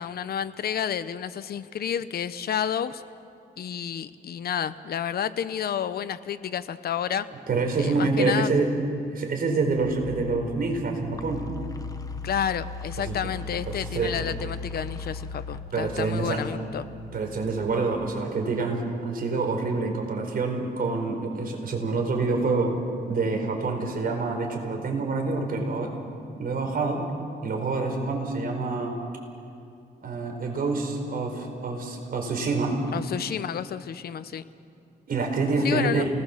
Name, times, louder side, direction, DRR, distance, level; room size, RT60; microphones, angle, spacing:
voice 1, 0.0-3.0 3.6-7.3 7.8-8.5 12.2-16.9 32.9-34.4 35.6-36.1, left 9 dB, 65° left, 12 dB, 0.8 m, -30 dB
voice 2, 7.5-8.7 9.1-11.5 13.0-13.2 13.7-14.1 15.7-16.4 17.1-22.8 23.1-26.0 26.3-27.1 27.4-28.9 30.0-32.8 35.1-36.1, right 3 dB, 55° right, 2 dB, 4.9 m, -27 dB
sound 1, 9.7-18.2, left 4 dB, 20° left, 1.4 m, -38 dB
29.0 x 19.5 x 7.4 m, 2.5 s
cardioid pair, 105°, 17 cm